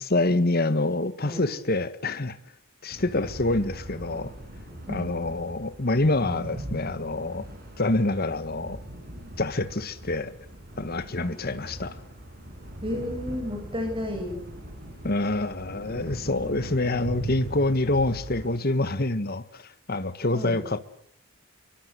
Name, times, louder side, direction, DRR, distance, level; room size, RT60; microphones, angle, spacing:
voice 1, 0.0-2.4 2.8-4.3 4.9-7.4 7.8-8.8 9.4-10.3 10.8-12.0 15.0-20.8, left 2 dB, 45° left, 13 dB, 1.4 m, -26 dB
sound 1, 2.9-18.5, equal, 45° right, 6.7 m, -40 dB
voice 2, 12.8-14.4 20.3-20.6, left 1 dB, 25° right, 4 dB, 7.7 m, -32 dB
25.0 x 23.5 x 8.2 m, 0.67 s
head